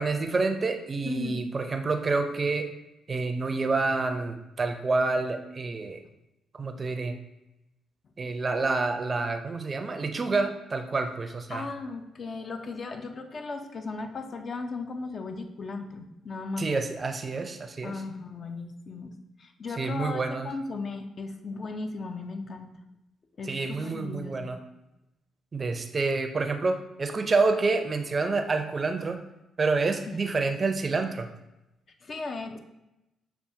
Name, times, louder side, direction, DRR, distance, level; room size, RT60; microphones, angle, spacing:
voice 1, 0.0-2.7 3.1-6.0 6.5-7.1 8.2-11.7 16.6-18.0 19.8-20.5 23.5-24.6 25.5-29.2 29.6-31.3, right 3 dB, 40° right, 7 dB, 0.5 m, -28 dB
voice 2, 1.0-1.5 11.5-16.7 17.8-22.7 23.4-24.5 30.1-30.2 32.0-32.6, left 3 dB, 50° left, 6 dB, 0.5 m, -36 dB
6.8 x 2.3 x 2.7 m, 0.92 s
supercardioid pair, 65°, 0 cm